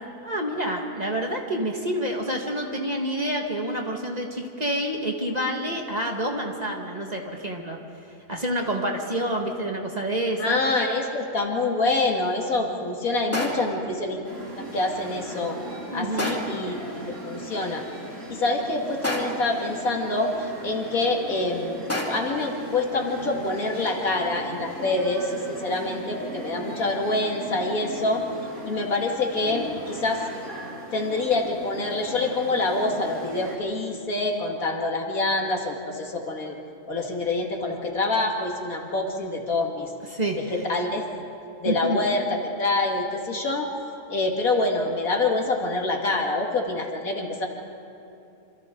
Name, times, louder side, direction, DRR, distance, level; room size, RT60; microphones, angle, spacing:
voice 1, 0.2-7.8 8.3-10.6 15.9-16.3 40.1-40.6 41.6-42.0, right 1 dB, 30° right, 1 dB, 1.8 m, -28 dB
voice 2, 10.4-14.2 14.7-15.6 15.9-17.8 18.3-28.2 28.6-30.2 30.9-36.6 36.9-39.9 40.5-41.0 41.6-42.3 42.6-43.7 44.1-47.5, left 2 dB, 70° left, 1 dB, 2.6 m, -26 dB
sound 1, 13.3-13.8 16.2-16.7 19.0-19.6 21.9-22.4, left 1 dB, 10° left, 2.5 m, -29 dB
sound 2, 14.2-33.6, right 2 dB, 70° right, 3.3 m, -38 dB
27.0 x 26.5 x 3.9 m, 2.7 s
omnidirectional pair, 1.5 m